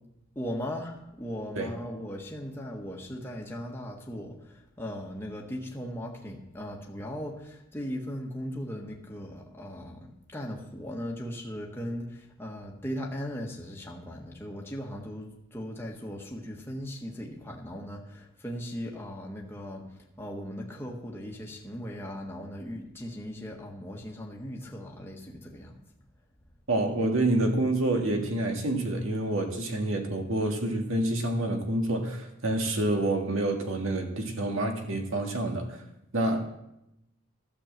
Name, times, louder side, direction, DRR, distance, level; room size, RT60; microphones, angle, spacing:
voice 1, 0.3-19.9 20.2-25.8, equal, 10° left, -1 dB, 1.4 m, -38 dB
voice 2, 26.7-35.8 36.1-36.5, right 1 dB, 65° right, 3 dB, 1.8 m, -28 dB
12.0 x 6.4 x 7.5 m, 0.87 s
head